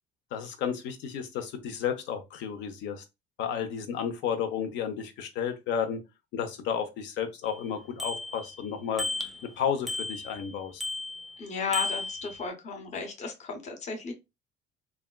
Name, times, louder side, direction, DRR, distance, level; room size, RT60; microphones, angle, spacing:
voice 1, 0.3-3.0 3.4-6.0 6.3-9.1 9.6-10.8, left 8 dB, 75° left, 0.7 m, -32 dB
Bicycle bell, 7.4-7.5 8.0-8.6 9.0-9.5 9.9-10.5 10.8-11.3 11.7-12.5, left 2 dB, ahead, 0.4 m, -34 dB
voice 2, 11.4-14.1, left 5 dB, 40° left, 0.8 m, -34 dB
3.3 x 2.3 x 2.2 m
cardioid pair, 135°, 19 cm